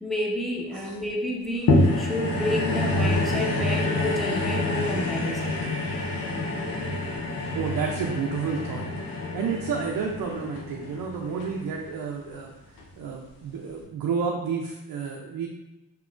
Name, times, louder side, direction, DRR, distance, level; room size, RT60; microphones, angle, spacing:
voice 1, 0.0-5.7, equal, ahead, -2 dB, 0.7 m, -30 dB
sound 1, 1.7-12.2 12.8-12.9, left 2 dB, 75° left, 0.8 m, -27 dB
voice 2, 7.5-8.9 9.3-12.5 13.0-15.5, right 6 dB, 75° right, 1 dB, 0.5 m, -30 dB
3.6 x 2.9 x 2.4 m, 0.97 s
cardioid pair, 70°, 35 cm